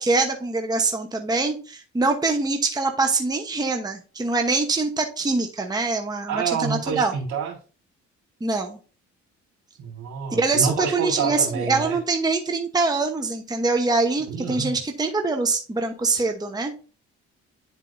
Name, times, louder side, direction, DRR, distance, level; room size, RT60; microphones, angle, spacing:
voice 1, 0.0-7.1 8.4-8.8 10.3-16.7, right 3 dB, 15° right, 4 dB, 0.9 m, -24 dB
voice 2, 6.3-7.5 9.8-12.0 14.3-14.8, right 6 dB, 70° right, -2 dB, 3.2 m, -28 dB
9.9 x 4.4 x 2.6 m, 0.37 s
cardioid pair, 90°, 30 cm